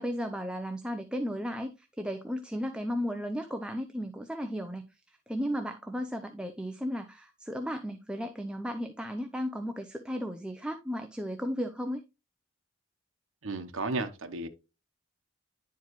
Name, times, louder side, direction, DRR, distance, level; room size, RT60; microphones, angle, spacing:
voice 1, 0.0-4.8 5.3-12.0, equal, 5° right, 0.5 m, -34 dB
voice 2, 13.4-14.5, right 3 dB, 80° right, 0.9 m, -33 dB
10.5 x 4.7 x 3.0 m
head